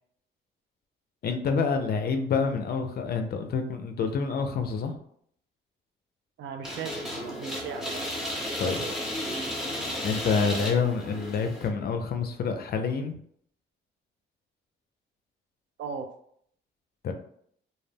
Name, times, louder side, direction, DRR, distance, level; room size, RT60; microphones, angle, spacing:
voice 1, 1.2-4.9 8.6-8.8 10.0-13.2 17.0-17.1, left 5 dB, 50° left, 6 dB, 0.4 m, -27 dB
voice 2, 6.4-8.0 8.6-9.0 15.8-16.1, right 6 dB, 70° right, 7 dB, 0.4 m, -37 dB
sound 1, 6.6-11.7, equal, 5° right, 0.8 m, -33 dB
2.2 x 2.0 x 3.3 m, 0.66 s
cardioid pair, 90°, 20 cm